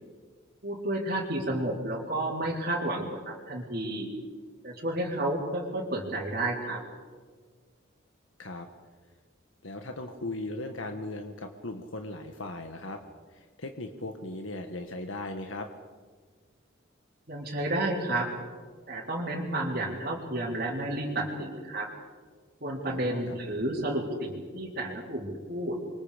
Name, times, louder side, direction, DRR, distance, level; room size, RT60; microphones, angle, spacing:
voice 1, 0.6-4.1 4.6-6.8 17.3-18.3 18.9-21.9 22.6-25.8, right 1 dB, 50° right, -4 dB, 4.0 m, -31 dB
voice 2, 9.6-13.0 13.3-15.7 22.8-23.4, left 2 dB, 85° left, 5 dB, 1.7 m, -38 dB
29.5 x 24.5 x 5.2 m, 1.5 s
head